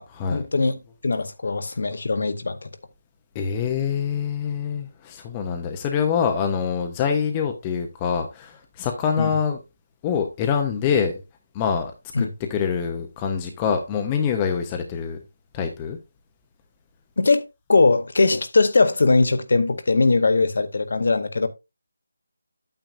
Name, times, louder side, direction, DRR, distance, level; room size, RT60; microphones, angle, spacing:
voice 1, 0.3-2.7 9.2-9.3 12.2-12.3 17.2-21.5, left 3 dB, 40° left, 0.7 m, -20 dB
voice 2, 3.3-9.6 10.0-11.1 11.5-11.9 12.2-15.2 15.5-16.0, left 7 dB, 10° left, 0.5 m, -25 dB
8.9 x 8.4 x 2.5 m
figure-of-eight pair, 180°, 0 cm